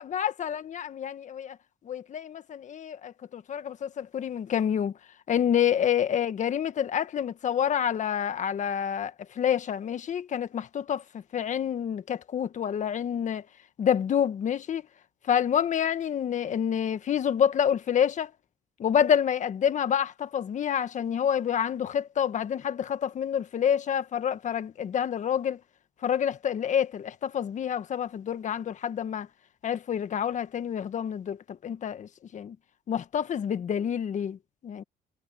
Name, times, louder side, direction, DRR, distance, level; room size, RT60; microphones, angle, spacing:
voice 1, 0.0-1.6 1.8-4.9 5.3-11.0 11.3-13.4 13.8-14.8 15.3-18.3 18.8-25.6 26.0-29.3 29.6-32.5 32.9-34.4 34.6-34.8, left 9 dB, 45° left, 1.6 m, -28 dB
cardioid pair, 110°, 17 cm